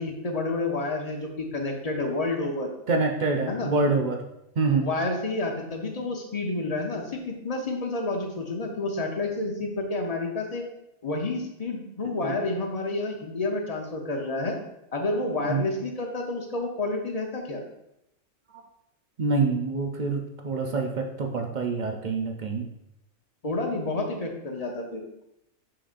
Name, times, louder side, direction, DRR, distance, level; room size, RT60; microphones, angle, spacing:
voice 1, 0.0-2.7 3.5-3.7 4.8-10.6 11.0-14.6 14.9-17.6 23.4-25.2, left 2 dB, 35° left, 2 dB, 0.8 m, -29 dB
voice 2, 2.9-4.2 4.6-4.9 12.2-12.3 15.4-15.6 18.5-18.6 19.2-22.7, right 3 dB, 50° right, 3 dB, 0.6 m, -26 dB
6.8 x 5.8 x 2.5 m, 0.84 s
omnidirectional pair, 1.4 m